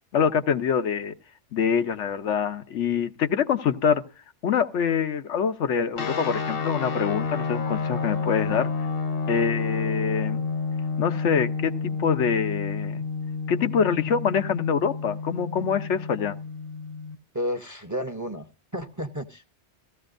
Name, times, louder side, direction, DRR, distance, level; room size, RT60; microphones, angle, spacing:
voice 1, 0.1-1.1 1.5-4.0 4.4-8.7 9.3-10.4 11.0-11.7 12.0-13.0 13.5-16.4, left 7 dB, 85° left, 1.2 m, -25 dB
sound 1, 6.0-17.2, left 4 dB, 55° left, 1.0 m, -30 dB
voice 2, 17.3-18.5 18.7-19.5, equal, 20° right, 0.6 m, -32 dB
16.5 x 14.5 x 2.5 m
omnidirectional pair, 1.2 m